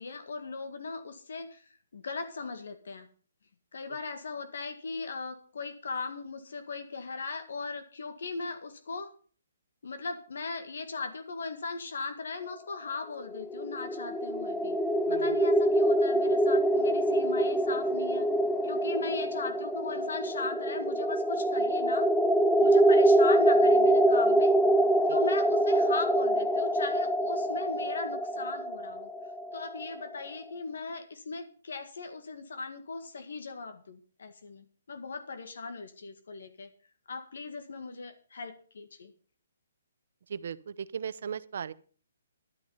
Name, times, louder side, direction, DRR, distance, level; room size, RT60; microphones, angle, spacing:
voice 1, 0.0-3.1 3.7-9.1 9.8-14.8 15.1-18.3 18.6-22.1 22.6-24.5 25.1-29.1 29.5-36.7 37.1-39.1, left 4 dB, 75° left, 7 dB, 1.9 m, -38 dB
sound 1, 13.3-30.1, right 1 dB, ahead, 0.4 m, -25 dB
voice 2, 15.1-15.4 25.1-25.2 40.3-41.7, right 7 dB, 60° right, 16 dB, 0.8 m, -37 dB
11.5 x 9.8 x 5.6 m, 0.42 s
hypercardioid pair, 165°, 0 cm